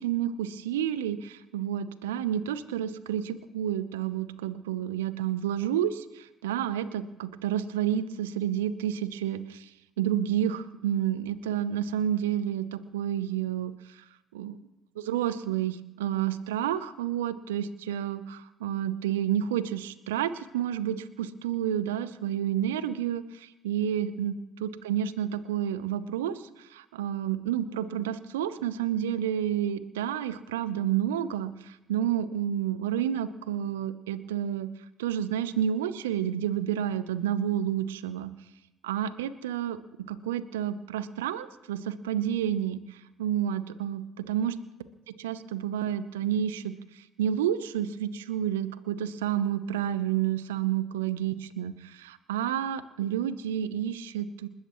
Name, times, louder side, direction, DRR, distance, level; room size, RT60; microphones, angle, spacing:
voice 1, 0.0-9.7 10.0-14.0 14.3-14.6 15.0-34.7 35.0-38.3 38.8-39.8 40.1-44.6 45.2-54.5, right 10 dB, 85° right, 14 dB, 0.6 m, -30 dB
29.0 x 13.0 x 3.1 m, 0.96 s
hypercardioid pair, 50°, 0 cm